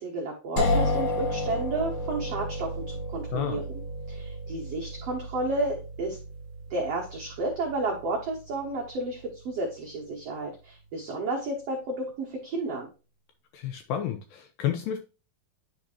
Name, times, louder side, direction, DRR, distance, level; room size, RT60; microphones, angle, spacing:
voice 1, 0.0-3.6 4.1-6.2 6.7-12.9, right 2 dB, 80° right, -2 dB, 1.4 m, -32 dB
sound 1, 0.6-10.3, left 1 dB, 60° left, 1.4 m, -33 dB
voice 2, 13.5-15.0, left 10 dB, 85° left, 6 dB, 2.1 m, -30 dB
10.5 x 3.9 x 2.8 m, 0.33 s
omnidirectional pair, 4.6 m